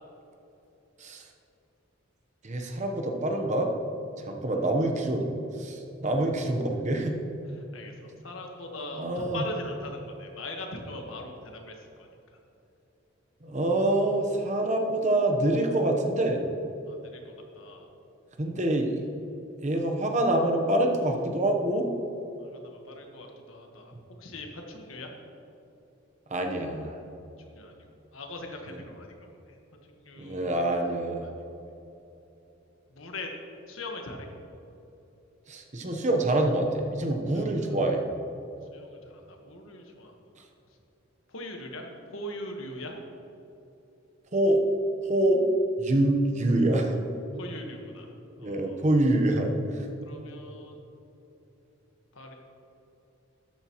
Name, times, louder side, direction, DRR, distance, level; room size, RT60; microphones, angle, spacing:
voice 1, 2.4-3.7 4.3-5.3 5.6-7.2 8.9-9.4 13.4-16.4 18.4-19.0 19.6-21.9 26.3-26.9 30.2-31.3 35.5-38.0 44.3-44.6 45.0-45.4 45.8-47.0 48.4-49.9, right 1 dB, 35° right, 3 dB, 1.0 m, -26 dB
voice 2, 7.6-12.1 16.9-17.8 22.4-23.9 24.2-25.1 27.4-27.8 28.1-29.5 29.9-31.6 32.9-33.3 33.7-34.3 37.3-37.5 38.7-40.1 41.3-43.0 47.4-48.1 48.4-48.8 50.0-50.8 52.1-52.3, left 1 dB, 80° left, 2 dB, 1.4 m, -41 dB
12.5 x 8.9 x 3.0 m, 2.9 s
head